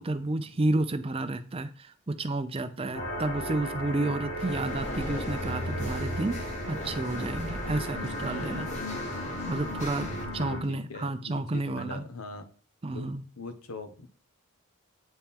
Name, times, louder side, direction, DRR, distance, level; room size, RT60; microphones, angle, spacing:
voice 1, 0.0-8.7 9.5-12.0 12.8-13.2, right 2 dB, 25° right, 11 dB, 0.5 m, -31 dB
sound 1, 2.9-10.6, equal, 70° left, 3.6 m, -35 dB
sound 2, 4.4-10.3, left 1 dB, 35° left, 1.3 m, -39 dB
voice 2, 9.9-12.5 12.9-14.1, left 3 dB, 90° left, 8 dB, 1.1 m, -42 dB
8.7 x 4.4 x 3.6 m, 0.42 s
head